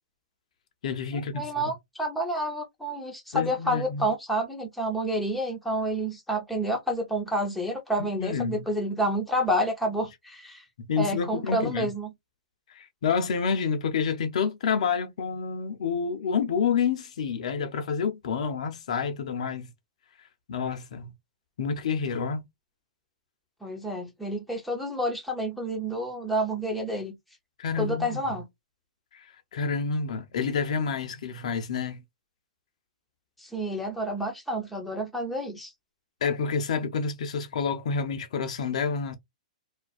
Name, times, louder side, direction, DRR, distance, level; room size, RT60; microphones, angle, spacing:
voice 1, 0.8-1.7 3.3-4.1 8.2-8.6 10.8-11.9 12.7-19.7 20.5-21.1 21.6-22.4 27.6-28.4 29.1-32.0 36.2-39.2, left 6 dB, 65° left, 0.5 m, -29 dB
voice 2, 1.3-10.6 11.0-12.1 23.6-27.1 27.8-28.5 33.4-35.7, equal, ahead, 0.8 m, -29 dB
2.4 x 2.2 x 2.3 m
hypercardioid pair, 125°, 4 cm